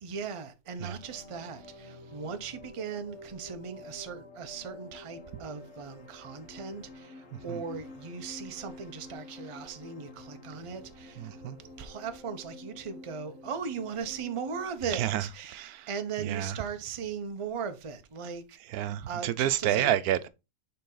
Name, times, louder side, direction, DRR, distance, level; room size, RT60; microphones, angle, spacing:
voice 1, 0.0-11.3 11.8-18.6 19.1-19.9, right 6 dB, 35° right, 0.5 m, -38 dB
sound 1, 1.0-14.7, left 2 dB, 55° left, 2.0 m, -49 dB
voice 2, 11.2-11.6 14.9-15.2 15.8-15.9 16.2-16.5 18.7-20.3, right 11 dB, 90° right, 1.1 m, -29 dB
6.7 x 4.0 x 3.8 m
omnidirectional pair, 1.5 m